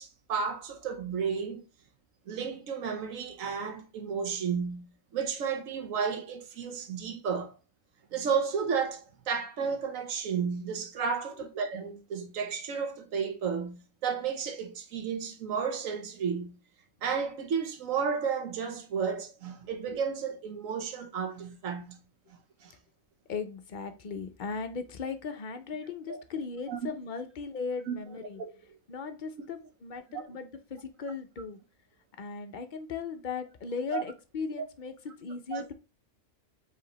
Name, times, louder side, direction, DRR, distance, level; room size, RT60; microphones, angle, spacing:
voice 1, 0.0-1.6 2.3-4.9 5.1-7.5 8.1-16.6 17.0-22.0 22.6-22.7 26.1-26.2 26.7-26.8 27.9-28.0 28.4-28.5 30.1-30.2 33.9-34.0 35.5-35.7, right 6 dB, 85° right, 1.2 m, -32 dB
voice 2, 23.3-28.4 28.9-31.6 32.2-35.7, left 5 dB, 50° left, 0.6 m, -37 dB
4.9 x 3.3 x 3.0 m
omnidirectional pair, 1.4 m